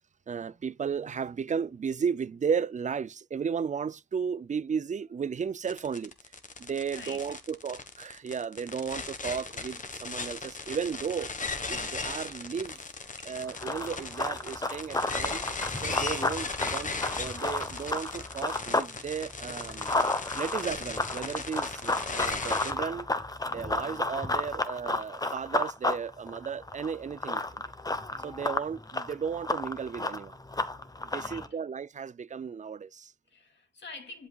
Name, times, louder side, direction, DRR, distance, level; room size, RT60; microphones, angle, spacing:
voice 1, 0.3-6.1 6.6-11.3 11.7-12.8 13.3-15.4 15.7-16.9 17.2-20.0 20.3-23.1 23.5-27.6 28.2-30.3 31.0-33.1, right 6 dB, 45° right, 0.4 m, -34 dB
sound 1, 5.7-22.7, left 4 dB, 45° left, 1.3 m, -37 dB
voice 2, 6.9-7.4 13.2-13.4 31.1-31.6 33.3-34.3, left 3 dB, 90° left, 2.8 m, -46 dB
Run, 13.4-18.9 19.3-31.5, left 2 dB, 20° left, 0.8 m, -32 dB
11.0 x 5.4 x 2.3 m
wide cardioid pair, 110°, 18 cm